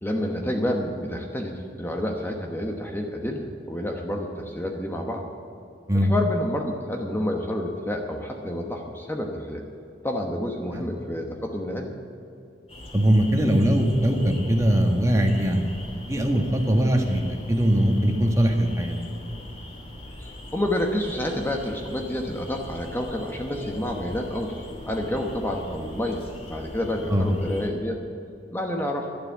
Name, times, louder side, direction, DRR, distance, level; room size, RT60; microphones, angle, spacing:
voice 1, 0.0-5.2 5.9-9.6 10.0-11.9 20.2-26.2 26.5-28.0 28.5-29.1, left 1 dB, 15° left, 1 dB, 1.1 m, -29 dB
sound 1, 12.7-27.7, left 1 dB, 40° left, 2.8 m, -42 dB
voice 2, 12.9-15.7 16.1-19.0 27.1-27.3, equal, 20° right, 3 dB, 1.5 m, -21 dB
12.0 x 11.0 x 8.3 m, 2.7 s
head